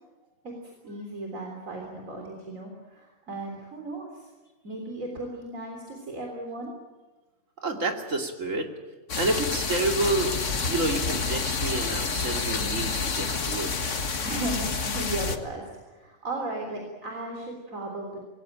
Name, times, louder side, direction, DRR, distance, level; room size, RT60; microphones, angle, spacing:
voice 1, 0.4-4.3 4.6-6.7 14.0-18.2, right 2 dB, 90° right, 1 dB, 4.0 m, -36 dB
voice 2, 7.6-8.7 9.1-10.4 10.7-13.7, right 2 dB, 70° right, 4 dB, 3.1 m, -29 dB
sound 1, 9.1-15.4, left 4 dB, 65° left, 1.9 m, -29 dB
25.0 x 19.5 x 9.0 m, 1.2 s
omnidirectional pair, 1.4 m